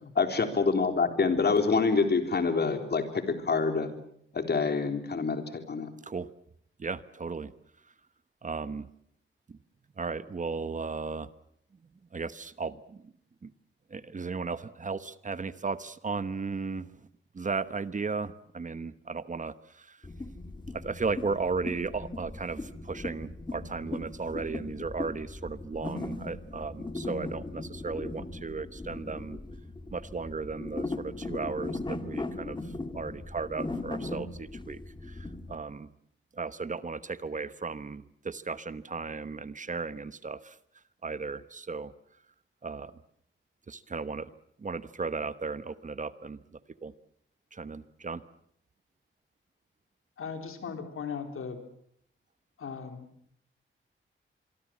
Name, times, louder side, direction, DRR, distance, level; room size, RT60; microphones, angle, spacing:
voice 1, 0.0-3.9 4.3-5.9, left 4 dB, 50° left, 7 dB, 3.6 m, -26 dB
voice 2, 6.8-7.5 8.4-8.9 9.5-9.6 10.0-11.3 12.1-13.1 13.4-13.5 13.9-16.9 17.3-20.0 20.7-29.4 29.9-32.6 32.9-34.8 35.1-35.9 36.4-40.5 41.0-41.9 42.6-42.9 43.7-44.3 44.6-46.4 46.8-46.9 47.5-48.2, right 4 dB, 40° right, 14 dB, 1.1 m, -35 dB
sound 1, 20.0-35.6, left 2 dB, 20° left, 2.1 m, -38 dB
voice 3, 50.2-51.6 52.6-53.1, left 6 dB, 90° left, 6 dB, 3.8 m, -38 dB
26.0 x 23.5 x 7.4 m, 0.68 s
wide cardioid pair, 125°, 21 cm